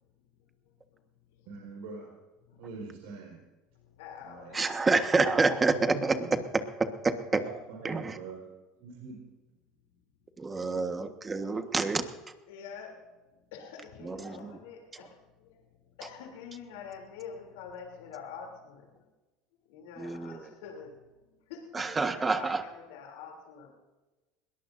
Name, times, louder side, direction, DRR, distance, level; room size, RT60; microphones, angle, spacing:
voice 1, 0.6-1.5 2.5-2.6 3.7-5.4 11.5-11.6 12.5-19.1 19.7-21.0 21.3-23.7, left 6 dB, 85° left, 1 dB, 3.1 m, -47 dB
voice 2, 1.5-2.1 2.6-3.4 4.2-4.5 5.3-6.4 7.1-8.5 8.8-9.2, right 4 dB, 75° right, -1 dB, 4.8 m, -44 dB
voice 3, 4.5-6.1 7.0-7.4 7.8-8.2 10.4-12.1 14.0-14.6 20.0-20.5 21.7-22.6, right 3 dB, 20° right, 8 dB, 1.4 m, -28 dB
21.5 x 18.0 x 2.7 m, 1.2 s
supercardioid pair, 110°, 0 cm